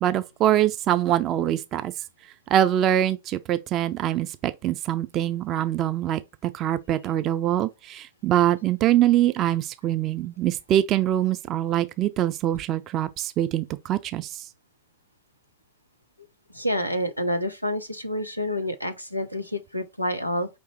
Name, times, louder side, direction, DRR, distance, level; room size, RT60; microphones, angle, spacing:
voice 1, 0.0-1.9 2.5-14.4, right 12 dB, 35° right, 0.3 m, -24 dB
voice 2, 16.5-20.5, equal, 90° right, 0.6 m, -28 dB
4.9 x 3.2 x 3.1 m
figure-of-eight pair, 90°, 0 cm